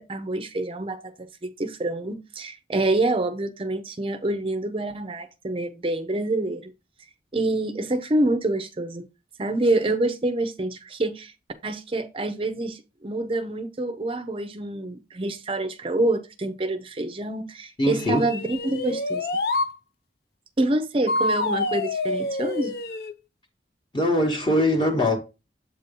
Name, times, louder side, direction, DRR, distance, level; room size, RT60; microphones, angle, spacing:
voice 1, 0.0-6.7 7.3-9.1 9.4-11.3 11.6-19.3 20.6-22.7, right 2 dB, 30° right, 0.5 m, -27 dB
voice 2, 17.8-18.2 23.9-25.2, left 1 dB, 25° left, 0.9 m, -22 dB
sound 1, 17.9-19.7 21.1-23.1, left 2 dB, 60° left, 0.6 m, -27 dB
7.7 x 2.7 x 5.1 m
head